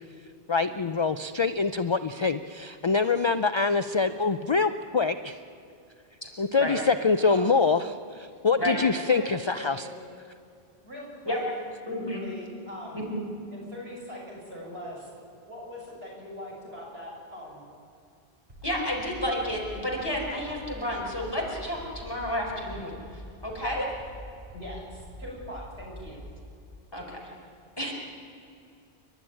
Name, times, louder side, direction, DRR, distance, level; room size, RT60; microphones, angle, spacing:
voice 1, 0.5-5.4 6.4-9.9 27.8-27.9, left 4 dB, 40° left, 11 dB, 0.4 m, -25 dB
voice 2, 8.6-9.9 10.8-11.4 12.1-13.0 13.5-15.1 15.5-17.6 24.5-26.2, equal, 70° right, -4 dB, 7.1 m, -41 dB
voice 3, 11.9-12.2 12.9-13.2 18.6-22.9 23.4-23.9 26.9-27.2 27.8-27.9, left 1 dB, 20° left, -2 dB, 4.8 m, -31 dB
sound 1, 18.5-26.3, equal, 50° right, 4.9 m, -44 dB
29.5 x 12.0 x 9.9 m, 2.6 s
omnidirectional pair, 1.1 m